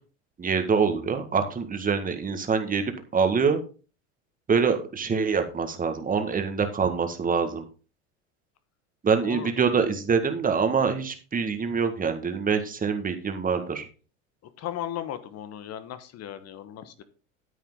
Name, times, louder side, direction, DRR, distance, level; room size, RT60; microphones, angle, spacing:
voice 1, 0.4-3.6 4.5-7.6 9.0-13.9, right 5 dB, 20° right, 7 dB, 1.7 m, -25 dB
voice 2, 14.6-17.0, left 10 dB, 45° left, 12 dB, 1.3 m, -36 dB
9.7 x 8.5 x 3.8 m, 0.35 s
hypercardioid pair, 90°, 37 cm